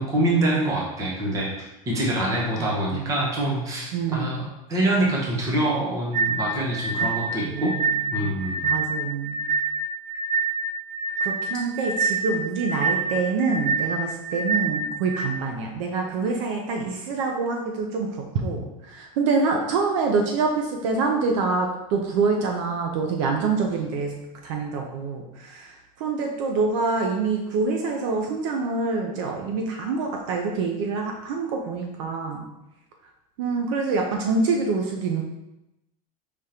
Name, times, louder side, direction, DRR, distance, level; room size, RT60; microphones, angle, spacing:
voice 1, 0.0-7.7 8.1-8.7, right 1 dB, 15° right, -3 dB, 0.8 m, -25 dB
voice 2, 2.6-3.2 3.9-4.4 7.0-7.1 7.4-7.8 8.1-8.4 8.6-9.5 11.2-24.1 24.4-32.4 33.4-35.2, right 4 dB, 55° right, 2 dB, 0.6 m, -26 dB
sound 1, 6.1-15.3, right 4 dB, 80° right, 1.4 m, -26 dB
5.0 x 3.5 x 2.8 m, 0.93 s
supercardioid pair, 175°, 19 cm